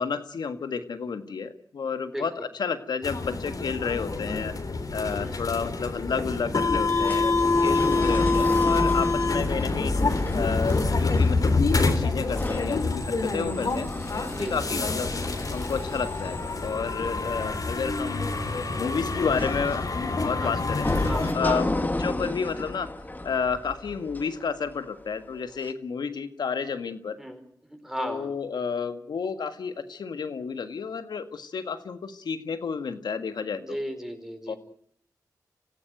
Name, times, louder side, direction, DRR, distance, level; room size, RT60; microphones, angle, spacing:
voice 1, 0.0-4.5 4.9-7.3 7.6-9.9 10.3-13.9 14.4-15.1 15.5-18.3 18.7-20.9 21.3-21.7 22.0-22.9 23.2-27.2 28.0-33.8 34.5-34.6, left 5 dB, 75° left, 9 dB, 1.8 m, -31 dB
sound 1, 3.0-21.3, left 3 dB, 55° left, 3.6 m, -26 dB
sound 2, 6.9-25.0 25.6-25.7, left 2 dB, 25° left, 2.1 m, -33 dB
voice 2, 7.7-8.1 14.3-14.8 20.4-20.5 21.0-21.7 27.2-27.4 27.7-28.3 33.5-34.6, equal, 5° right, 5 dB, 5.0 m, -35 dB
26.0 x 15.5 x 9.3 m, 0.63 s
cardioid pair, 50°, 7 cm